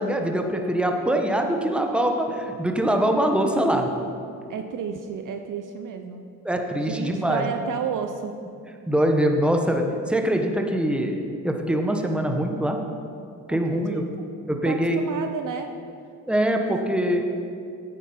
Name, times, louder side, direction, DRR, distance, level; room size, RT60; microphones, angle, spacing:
voice 1, 0.0-3.9 6.4-7.5 8.9-11.2 11.4-12.8 13.5-14.0 14.5-15.0 16.3-17.2, right 1 dB, ahead, 3 dB, 1.3 m, -23 dB
voice 2, 4.5-6.2 6.8-8.4 13.5-14.3 14.6-15.7 16.7-16.8 17.1-17.3, right 7 dB, 45° right, 7 dB, 0.8 m, -32 dB
9.9 x 8.3 x 5.6 m, 2.5 s
hypercardioid pair, 60°, 42 cm